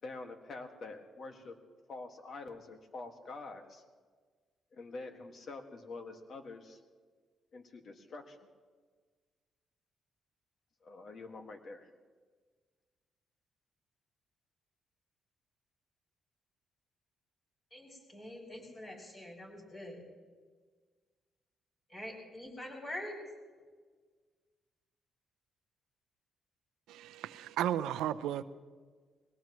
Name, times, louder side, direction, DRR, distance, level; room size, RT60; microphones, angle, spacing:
voice 1, 0.0-1.5 1.9-3.8 4.7-6.8 7.5-8.4 10.8-11.9, left 3 dB, 50° left, 5 dB, 1.9 m, -46 dB
voice 2, 17.7-20.0 21.9-23.2, left 1 dB, 25° left, -2 dB, 6.3 m, -45 dB
voice 3, 26.9-28.4, right 11 dB, 90° right, 13 dB, 0.6 m, -34 dB
22.0 x 18.0 x 3.1 m, 1.5 s
cardioid pair, 90°, 0 cm